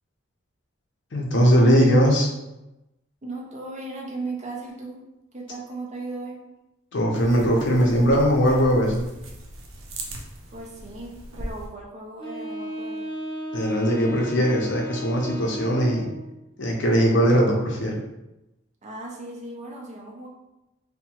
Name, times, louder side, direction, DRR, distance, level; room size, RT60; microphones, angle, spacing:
voice 1, 1.1-2.3 6.9-9.1 13.5-16.1 16.6-18.0, equal, 60° left, -1 dB, 0.6 m, -20 dB
voice 2, 3.2-6.4 10.5-13.1 18.8-20.3, right 2 dB, 35° right, -1 dB, 0.5 m, -37 dB
sound 1, 7.1-11.7, right 1 dB, 85° right, 0.5 m, -38 dB
Wind instrument woodwind instrument, 12.2-16.3, right 1 dB, 25° left, 0.6 m, -35 dB
2.7 x 2.1 x 2.8 m, 0.97 s
head